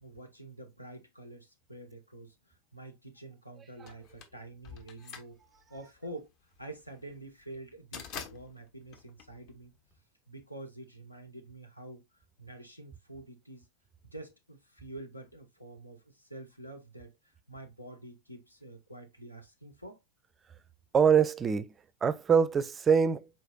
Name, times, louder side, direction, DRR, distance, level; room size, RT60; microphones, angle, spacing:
voice 1, 0.0-2.3 2.7-5.4 5.7-6.3 6.6-9.7 10.3-12.0 12.4-13.7 14.0-17.1 17.5-20.0, right 1 dB, 85° left, 1.1 m, -47 dB
sound 1, 3.9-10.0, left 7 dB, 40° left, 1.0 m, -47 dB
voice 2, 20.9-21.7 22.0-23.3, right 6 dB, 20° right, 0.4 m, -24 dB
4.9 x 4.4 x 2.3 m
figure-of-eight pair, 90°, 0 cm